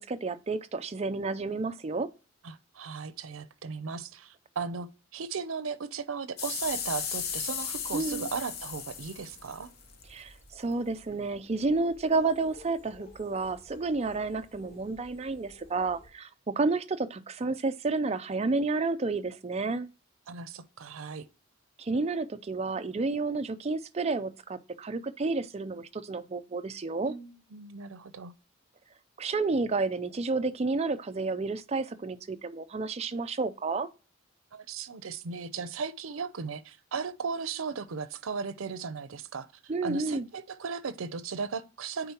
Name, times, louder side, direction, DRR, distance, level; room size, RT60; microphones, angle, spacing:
voice 1, 0.0-2.1 7.9-8.3 10.1-19.9 21.8-27.1 29.2-33.9 39.7-40.3, right 3 dB, 30° right, 0.4 m, -30 dB
voice 2, 2.4-9.7 20.3-21.2 27.1-28.3 34.5-39.5 39.8-42.1, right 5 dB, 90° right, 0.6 m, -36 dB
sound 1, 6.4-10.0 10.7-10.8, left 7 dB, 50° left, 0.8 m, -36 dB
sound 2, 6.6-16.1, left 2 dB, 30° left, 2.9 m, -55 dB
9.1 x 3.8 x 2.9 m
head